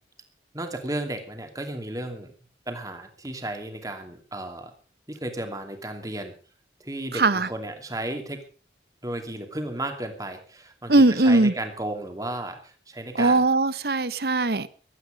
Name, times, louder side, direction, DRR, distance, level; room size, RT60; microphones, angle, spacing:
voice 1, 0.5-2.3 2.7-4.7 5.1-6.3 6.8-8.4 9.0-10.9 11.2-13.4, right 1 dB, 20° right, 2.7 m, -34 dB
voice 2, 7.1-7.5 10.9-11.5 13.1-14.7, right 2 dB, 60° right, 1.0 m, -20 dB
16.0 x 13.0 x 5.2 m
head